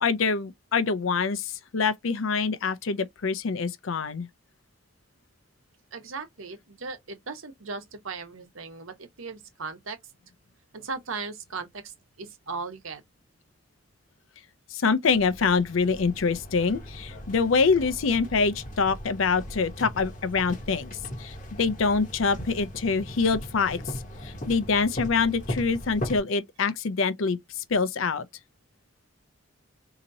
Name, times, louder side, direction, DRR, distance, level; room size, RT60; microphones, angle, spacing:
voice 1, 0.0-4.3 14.7-23.8 24.2-28.3, left 5 dB, 80° left, 0.5 m, -25 dB
voice 2, 5.9-10.1 10.7-13.0, right 4 dB, 85° right, 1.0 m, -37 dB
sound 1, 15.1-26.2, equal, 40° left, 0.9 m, -38 dB
4.0 x 2.9 x 2.6 m
head